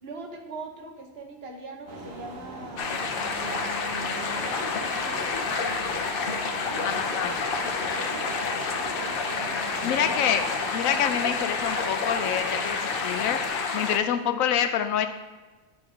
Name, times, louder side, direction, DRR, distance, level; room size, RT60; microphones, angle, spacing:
voice 1, 0.0-7.3 7.8-10.4 13.9-14.1, right 3 dB, 50° right, 3 dB, 1.1 m, -42 dB
sound 1, 1.9-13.5, right 2 dB, 75° right, 1.6 m, -41 dB
sound 2, 2.8-14.0, left 4 dB, 55° left, 0.7 m, -29 dB
sound 3, 4.6-4.9 5.3-5.6 6.0-6.2 6.7-6.9 7.3-7.5 8.1-8.3 8.8-8.9 9.4-9.6 10.2-10.4 10.9-11.1 11.6-11.8 12.1-12.5 13.0-13.1 13.7-13.9, left 2 dB, 20° left, 0.7 m, -45 dB
voice 2, 6.8-7.4 9.8-10.5 10.7-15.1, left 9 dB, 85° left, 9 dB, 1.0 m, -27 dB
9.6 x 3.8 x 4.9 m, 1.3 s
omnidirectional pair, 1.4 m